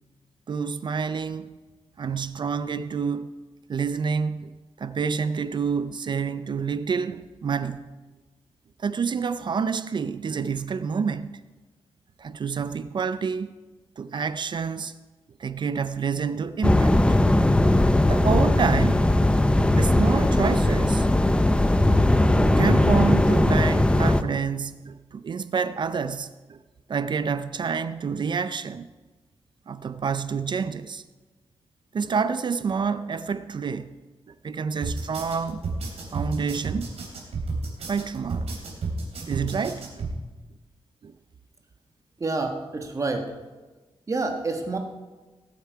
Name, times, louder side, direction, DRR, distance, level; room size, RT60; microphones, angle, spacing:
voice 1, 0.5-1.6 2.0-3.3 3.7-4.5 4.8-7.9 8.8-11.4 12.2-13.5 14.0-14.9 15.4-17.0 18.1-19.1 19.7-21.1 22.3-26.6 26.9-28.9 29.7-31.0 31.9-34.0 34.3-35.7 36.1-37.0 37.9-38.5 38.8-38.9 39.3-40.1 41.0-41.1, right 6 dB, 45° right, 0.5 m, -28 dB
sound 1, 16.6-24.2, left 1 dB, 10° left, 0.6 m, -19 dB
sound 2, 34.8-40.1, right 3 dB, 80° right, 3.5 m, -31 dB
voice 2, 42.2-43.4 44.1-44.8, right 3 dB, 30° right, 1.4 m, -28 dB
18.5 x 8.4 x 4.7 m
wide cardioid pair, 135°, 10 cm